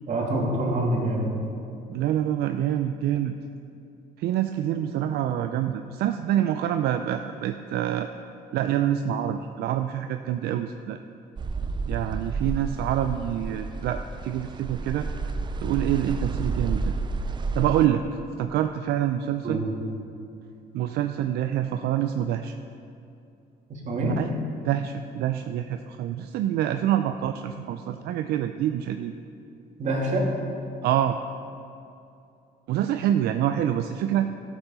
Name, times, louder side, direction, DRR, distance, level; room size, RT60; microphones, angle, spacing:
voice 1, 0.1-1.3 19.4-19.6 23.7-24.1 29.8-30.3, right 1 dB, 45° right, -3 dB, 2.8 m, -26 dB
voice 2, 1.9-3.3 4.2-8.1 8.5-11.0 11.9-15.1 15.6-16.9 17.5-18.0 18.4-19.6 20.7-22.6 24.0-24.3 24.6-29.1 30.8-31.2 32.7-34.3, right 11 dB, 75° right, 7 dB, 0.5 m, -26 dB
sound 1, 11.4-17.9, right 4 dB, 25° right, 0.5 m, -31 dB
13.0 x 7.0 x 5.6 m, 2.7 s
cardioid pair, 110°, 17 cm